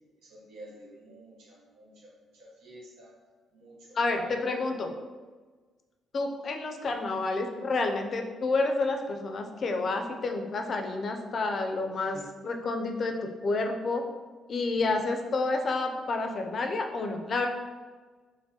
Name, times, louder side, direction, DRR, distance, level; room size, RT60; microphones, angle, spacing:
voice 1, 0.2-3.1 3.5-4.8 11.9-12.5, right 1 dB, 85° right, -3 dB, 0.9 m, -49 dB
voice 2, 3.9-4.9 6.1-12.2 12.4-13.2 13.4-14.0 14.5-17.5, left 3 dB, 50° left, 4 dB, 0.4 m, -29 dB
4.5 x 2.1 x 2.8 m, 1.4 s
cardioid pair, 90°, 0 cm